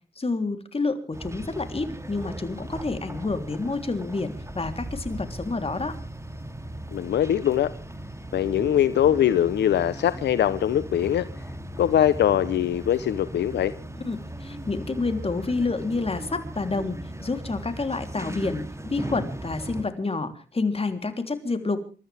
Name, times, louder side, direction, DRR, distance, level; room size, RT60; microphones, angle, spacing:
voice 1, 0.1-5.9 14.0-21.8, left 3 dB, 35° left, 3.4 m, -29 dB
sound 1, 1.1-19.8, right 1 dB, 15° right, 2.9 m, -38 dB
voice 2, 6.9-7.7 8.3-11.3 11.8-13.7, left 10 dB, 85° left, 0.8 m, -22 dB
28.0 x 14.0 x 3.5 m
cardioid pair, 60°, 18 cm